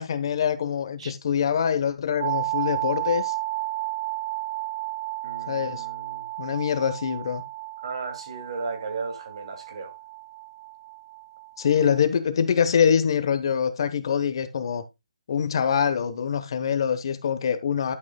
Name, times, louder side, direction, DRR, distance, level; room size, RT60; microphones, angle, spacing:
voice 1, 0.0-3.3 5.5-5.8 6.4-7.4 11.6-14.8 15.3-17.9, left 7 dB, 40° left, 1.1 m, -24 dB
sound 1, 2.2-12.0, right 19 dB, 30° right, 0.9 m, -33 dB
voice 2, 5.2-6.2 7.8-9.9, right 4 dB, 50° right, 2.6 m, -35 dB
11.0 x 6.2 x 2.3 m
hypercardioid pair, 160°, 4 cm